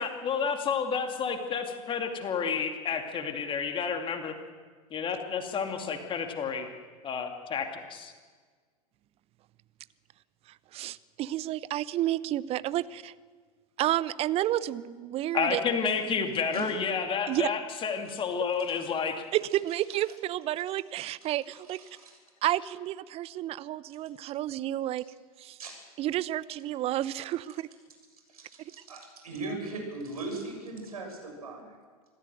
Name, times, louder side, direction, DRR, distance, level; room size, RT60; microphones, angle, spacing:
voice 1, 0.0-4.3 4.9-6.7 7.0-8.1 15.3-19.2, left 6 dB, 25° left, 5 dB, 2.5 m, -30 dB
voice 2, 10.7-13.1 13.8-15.6 17.3-17.5 19.3-21.8 22.4-25.0 25.4-25.6 26.0-27.7, right 14 dB, 30° right, 18 dB, 0.8 m, -30 dB
voice 3, 21.7-22.2 25.6-25.8 28.3-31.8, right 3 dB, 70° right, 2 dB, 7.0 m, -39 dB
26.5 x 14.5 x 7.9 m, 1.5 s
figure-of-eight pair, 90°, 20 cm